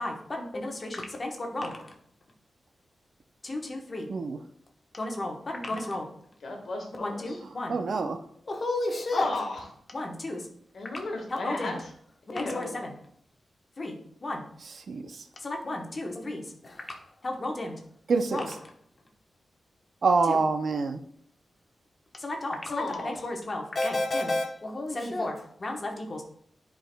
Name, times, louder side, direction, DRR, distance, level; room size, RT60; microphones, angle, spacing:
voice 1, 0.0-1.7 3.4-4.1 5.0-6.1 7.0-7.8 8.5-9.3 9.9-10.5 11.4-11.8 12.3-12.9 13.8-14.4 15.4-16.9 17.2-17.8 18.3-18.5 20.3-20.4 22.2-26.2, left 2 dB, 30° left, 1 dB, 1.0 m, -32 dB
voice 2, 6.4-7.4 9.1-9.6 10.7-11.9 12.3-12.8 22.7-23.2, left 2 dB, 60° left, 1 dB, 1.4 m, -34 dB
voice 3, 7.7-8.2 14.6-15.2 18.1-18.4 20.0-21.0, right 4 dB, 55° right, 8 dB, 0.5 m, -26 dB
10.0 x 4.6 x 2.2 m, 0.65 s
wide cardioid pair, 170°, 0 cm